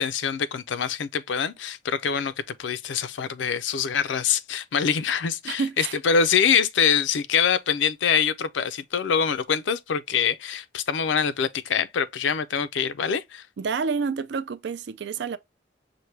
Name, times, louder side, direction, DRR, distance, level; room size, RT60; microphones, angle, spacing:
voice 1, 0.0-13.4, left 7 dB, 80° left, 0.4 m, -24 dB
voice 2, 5.4-6.0 13.6-15.4, right 5 dB, 65° right, 0.4 m, -29 dB
5.8 x 2.2 x 3.2 m
head